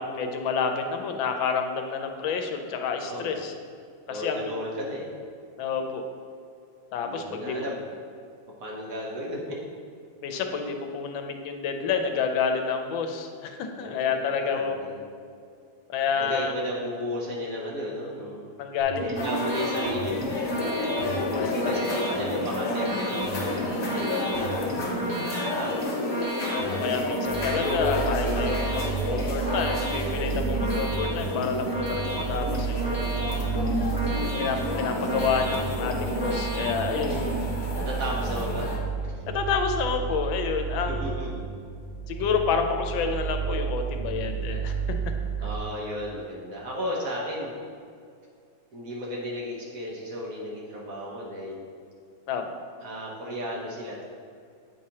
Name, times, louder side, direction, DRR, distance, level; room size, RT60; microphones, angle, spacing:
voice 1, 0.1-3.5 4.1-4.5 5.6-6.0 6.9-7.6 10.2-14.8 15.9-16.5 18.6-19.0 21.0-21.8 26.5-33.6 34.4-37.3 39.3-41.4 42.1-44.7 45.4-45.5 52.3-52.4, left 6 dB, 85° left, 5 dB, 1.4 m, -29 dB
voice 2, 3.0-3.4 4.1-5.1 7.0-7.9 8.6-9.6 13.8-15.1 16.1-18.5 19.0-20.4 21.2-21.8 22.1-25.9 31.9-32.2 37.7-38.7 40.9-41.5 45.4-47.5 48.7-51.7 52.8-54.1, equal, 55° right, -4 dB, 1.1 m, -34 dB
sound 1, 18.8-37.3, right 1 dB, 15° right, 0.7 m, -33 dB
sound 2, 19.1-38.8, left 2 dB, 55° left, 1.3 m, -31 dB
sound 3, 27.2-45.6, right 6 dB, 90° right, 1.5 m, -32 dB
8.6 x 4.7 x 2.8 m, 2.3 s
omnidirectional pair, 2.1 m